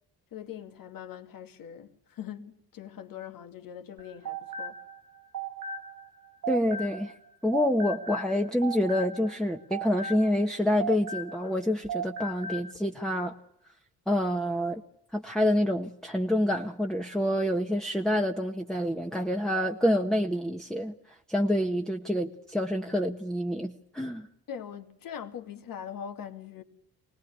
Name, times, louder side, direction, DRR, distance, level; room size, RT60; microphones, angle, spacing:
voice 1, 0.3-4.8 24.5-26.6, left 8 dB, 60° left, 2.4 m, -42 dB
sound 1, 4.0-7.2 7.5-11.6 11.9-12.7, right 4 dB, 60° right, 1.7 m, -37 dB
voice 2, 6.5-7.1 7.4-13.3 14.1-14.8 15.1-20.9 21.3-24.3, equal, ahead, 1.3 m, -27 dB
25.0 x 19.0 x 8.3 m
supercardioid pair, 75°, 38 cm